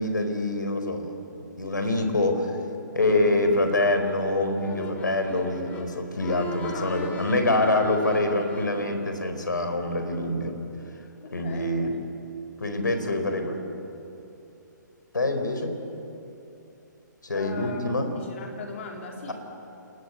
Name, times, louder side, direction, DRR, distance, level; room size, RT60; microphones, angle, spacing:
voice 1, 0.0-2.5 2.9-10.5 11.3-11.9 12.6-13.6 15.1-15.8 17.2-18.1, left 2 dB, 70° left, 6 dB, 4.2 m, -25 dB
sound 1, 3.0-9.1, left 2 dB, 15° left, 3.5 m, -39 dB
voice 2, 6.6-7.0 11.2-11.8 13.0-13.2 17.3-17.9 18.2-19.3, left 4 dB, 40° left, 1 dB, 3.9 m, -39 dB
29.0 x 20.5 x 9.4 m, 3.0 s
figure-of-eight pair, 130°, 10 cm